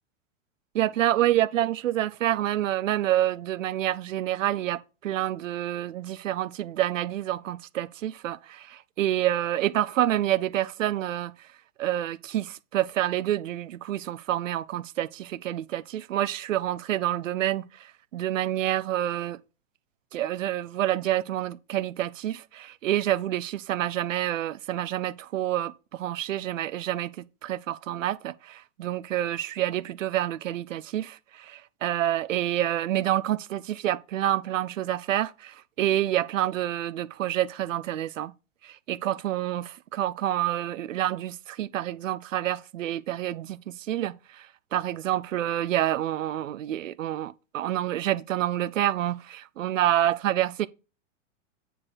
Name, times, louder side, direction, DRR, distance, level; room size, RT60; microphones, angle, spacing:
voice 1, 0.7-11.3 11.8-19.4 20.1-27.1 27.4-38.3 38.6-44.5 44.7-50.7, right 13 dB, 85° right, 0.7 m, -28 dB
8.1 x 5.5 x 4.0 m
hypercardioid pair, 135°, 37 cm